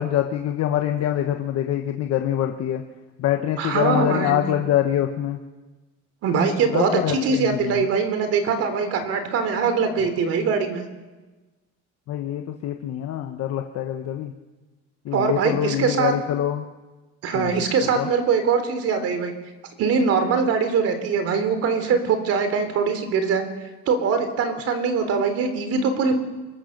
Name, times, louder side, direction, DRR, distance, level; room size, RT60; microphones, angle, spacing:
voice 1, 0.0-2.8 3.2-5.4 6.7-7.9 12.1-14.3 15.0-16.6 17.3-17.6 17.9-18.1, left 11 dB, 55° left, 4 dB, 1.3 m, -25 dB
voice 2, 3.6-4.4 6.2-10.9 15.1-16.1 17.2-19.3 19.8-23.4 23.9-26.2, right 5 dB, 50° right, 8 dB, 3.7 m, -22 dB
26.5 x 23.0 x 6.7 m, 1.2 s
cardioid pair, 170°, 31 cm